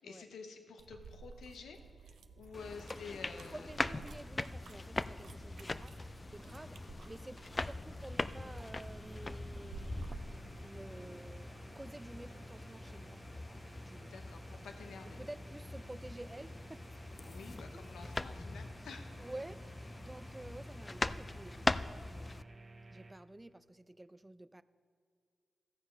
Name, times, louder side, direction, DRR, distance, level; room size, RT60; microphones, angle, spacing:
voice 1, 0.0-4.0 14.0-15.2 17.2-19.1, left 5 dB, 85° left, 5 dB, 0.7 m, -50 dB
sound 1, 0.8-10.4, right 4 dB, 85° right, 0.5 m, -53 dB
sound 2, 2.5-22.4, left 2 dB, 35° left, 0.3 m, -42 dB
voice 2, 3.5-10.1 10.6-13.2 13.7-14.1 15.2-16.8 17.4-17.8 19.2-22.5 22.9-24.6, right 1 dB, 20° right, 14 dB, 0.4 m, -51 dB
sound 3, 8.1-23.1, right 2 dB, 45° right, 0.9 m, -54 dB
14.0 x 7.0 x 5.2 m, 2.2 s
supercardioid pair, 40°, 0 cm